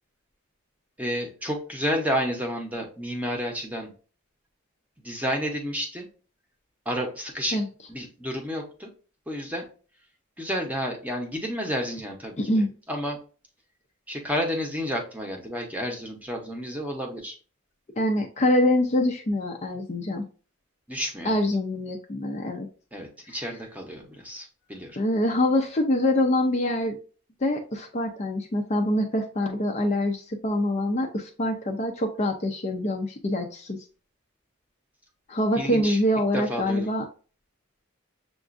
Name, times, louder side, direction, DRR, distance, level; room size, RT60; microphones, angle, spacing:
voice 1, 1.0-3.9 5.0-6.1 6.9-7.6 7.9-8.9 9.3-9.7 10.4-12.4 12.9-13.2 14.1-17.4 20.9-21.4 22.9-25.0 35.5-36.0 36.3-36.9, equal, 5° right, 2 dB, 0.8 m, -30 dB
voice 2, 18.0-20.2 21.2-22.7 25.0-27.0 27.4-33.8 35.3-37.0, left 1 dB, 30° left, 3 dB, 0.5 m, -25 dB
6.9 x 2.4 x 2.5 m, 0.37 s
head